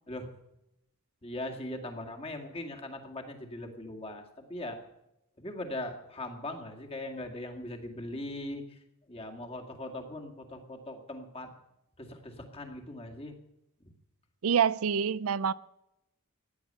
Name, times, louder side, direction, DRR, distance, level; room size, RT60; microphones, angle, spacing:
voice 1, 1.2-4.8 5.4-8.8 9.1-11.5 12.0-13.3, left 1 dB, 25° left, 2.1 m, -40 dB
voice 2, 14.4-15.5, right 7 dB, 75° right, 0.5 m, -26 dB
15.5 x 10.0 x 8.8 m
head